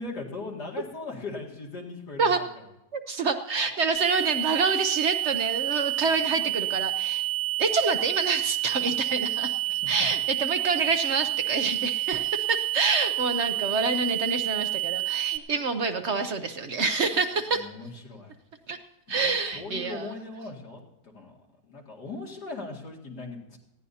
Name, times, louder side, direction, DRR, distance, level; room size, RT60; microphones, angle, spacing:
voice 1, 0.0-2.3 17.5-18.3 19.2-21.3 21.6-23.6, left 3 dB, 90° left, -1 dB, 2.9 m, -39 dB
voice 2, 2.9-7.3 7.6-17.7 18.7-18.8 19.1-20.1, right 4 dB, 55° right, 7 dB, 0.9 m, -27 dB
sound 1, 4.0-15.4, right 17 dB, 80° right, 0.5 m, -29 dB
19.5 x 15.5 x 2.8 m, 0.91 s
omnidirectional pair, 1.7 m